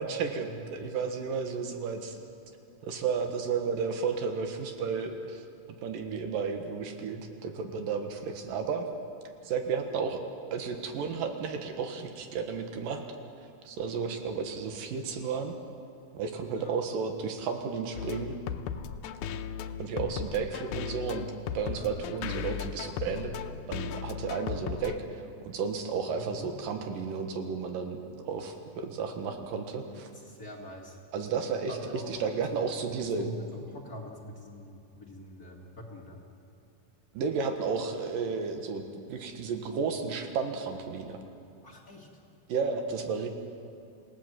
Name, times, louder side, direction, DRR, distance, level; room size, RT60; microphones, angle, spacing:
voice 1, 0.0-2.2 2.8-5.4 5.8-8.9 9.4-10.2 10.5-13.0 13.7-15.5 16.1-18.4 19.8-21.3 21.5-23.4 23.7-25.0 25.5-28.0 28.3-30.1 31.1-33.3 37.1-38.8 39.1-41.2 42.5-43.3, right 5 dB, 90° right, 5 dB, 3.3 m, -32 dB
sound 1, 18.0-25.0, left 8 dB, 75° left, 2.2 m, -36 dB
voice 2, 21.7-22.0 24.1-24.3 26.1-26.5 30.2-31.0 31.7-36.2 41.6-42.1, left 1 dB, 30° left, -1 dB, 2.1 m, -44 dB
27.5 x 17.5 x 7.6 m, 2.5 s
omnidirectional pair, 3.8 m